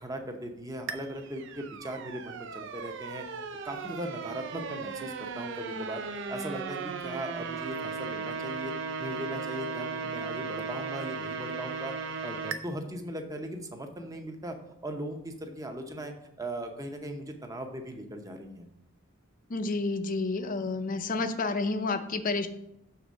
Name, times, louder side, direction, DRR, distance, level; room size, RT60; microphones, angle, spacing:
voice 1, 0.0-3.2 3.6-6.0 6.3-8.7 9.0-11.9 12.2-14.6 14.8-18.7, right 1 dB, 15° right, 4 dB, 0.7 m, -38 dB
sound 1, 0.9-12.6, right 5 dB, 60° right, 0.5 m, -37 dB
voice 2, 19.5-22.5, left 3 dB, 40° left, 9 dB, 0.5 m, -30 dB
6.8 x 3.5 x 6.2 m, 0.82 s
head